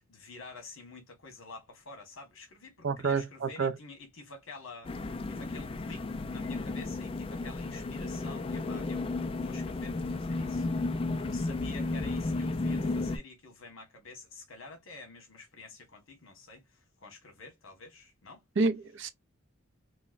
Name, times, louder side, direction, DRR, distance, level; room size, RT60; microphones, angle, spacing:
voice 1, 0.0-10.7 11.2-18.4, left 3 dB, 80° left, 1.3 m, -49 dB
voice 2, 2.8-3.8 18.6-19.1, right 4 dB, 60° right, 0.5 m, -28 dB
sound 1, 4.8-13.2, left 3 dB, 25° left, 0.3 m, -33 dB
3.8 x 2.1 x 2.4 m
head